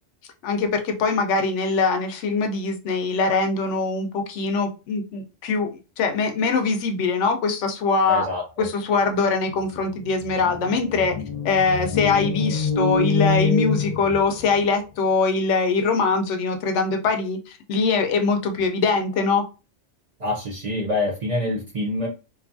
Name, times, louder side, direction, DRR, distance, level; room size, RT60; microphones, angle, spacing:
voice 1, 0.4-5.7 6.0-8.2 8.6-11.2 11.4-19.4, left 4 dB, 80° left, 0.9 m, -22 dB
voice 2, 8.1-8.7 20.2-22.1, left 2 dB, 50° right, 0.5 m, -26 dB
sound 1, 9.2-9.3 9.5-14.6, left 4 dB, 45° left, 0.7 m, -26 dB
2.6 x 2.3 x 2.5 m
omnidirectional pair, 1.2 m